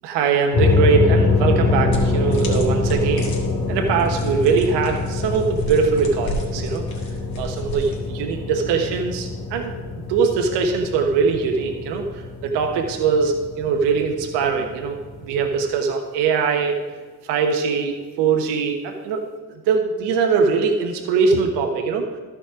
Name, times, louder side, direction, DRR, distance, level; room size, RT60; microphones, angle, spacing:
voice 1, 0.0-3.3 3.7-6.8 7.4-9.7 10.1-12.0 12.4-16.7 17.3-19.2 19.7-22.0, right 5 dB, 70° right, 3 dB, 1.3 m, -21 dB
sound 1, 0.5-15.7, left 3 dB, 75° left, 2.9 m, -24 dB
sound 2, 1.9-8.1, equal, 55° left, 2.7 m, -34 dB
13.0 x 5.4 x 5.0 m, 1.4 s
hypercardioid pair, 55°, 43 cm